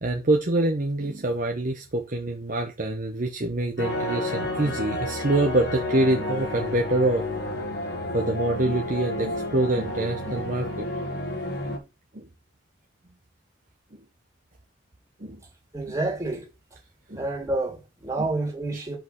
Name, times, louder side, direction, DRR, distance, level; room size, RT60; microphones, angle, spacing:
voice 1, 0.0-7.2 8.1-10.9 11.7-11.8 12.1-12.3 15.2-15.4 17.1-17.2 18.7-18.8, right 2 dB, 40° right, 1.0 m, -25 dB
sound 1, 3.8-11.8, left 1 dB, 55° left, 1.9 m, -31 dB
voice 2, 15.7-16.5 17.1-19.0, right 2 dB, 15° right, 2.6 m, -28 dB
6.0 x 5.4 x 5.9 m
head